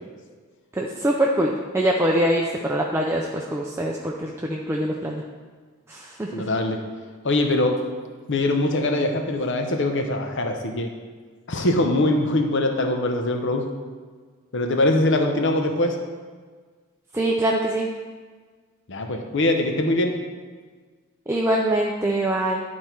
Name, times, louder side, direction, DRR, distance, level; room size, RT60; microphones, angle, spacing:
voice 1, 0.7-5.2 5.9-6.4 17.1-17.9 21.3-22.6, right 1 dB, 10° right, -1 dB, 0.4 m, -23 dB
voice 2, 6.3-6.8 7.2-7.8 8.3-10.9 11.5-13.7 14.5-16.0 18.9-20.2, left 1 dB, 55° left, 4 dB, 0.8 m, -22 dB
11.0 x 4.2 x 4.5 m, 1.5 s
head